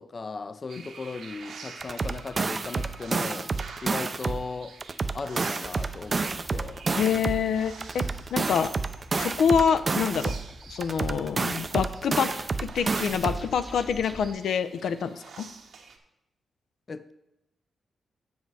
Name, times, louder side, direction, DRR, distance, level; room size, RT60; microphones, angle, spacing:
voice 1, 0.0-3.5 3.8-4.8 5.1-6.9 16.9-17.1, left 4 dB, 35° left, 0.4 m, -37 dB
sound 1, 0.7-16.0, right 5 dB, 75° right, 1.1 m, -48 dB
sound 2, 1.8-4.5 4.8-7.5 7.8-10.5 10.8-13.5, right 4 dB, 30° right, 0.4 m, -29 dB
sound 3, 5.6-14.3, equal, 5° left, 0.8 m, -47 dB
voice 2, 7.0-8.0 8.3-8.7 9.1-10.3 10.7-12.3 12.6-15.5, left 7 dB, 85° left, 0.5 m, -26 dB
8.0 x 6.5 x 4.7 m
wide cardioid pair, 130°, 0 cm